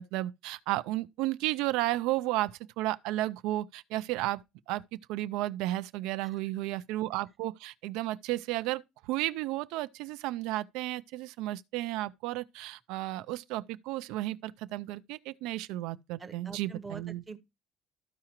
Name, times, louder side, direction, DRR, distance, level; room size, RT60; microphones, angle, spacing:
voice 1, 0.0-4.4 4.7-4.8 5.1-17.2, right 16 dB, 75° right, 0.4 m, -33 dB
voice 2, 16.2-17.4, right 4 dB, 15° right, 0.7 m, -44 dB
13.5 x 4.8 x 2.9 m
cardioid pair, 175°, 0 cm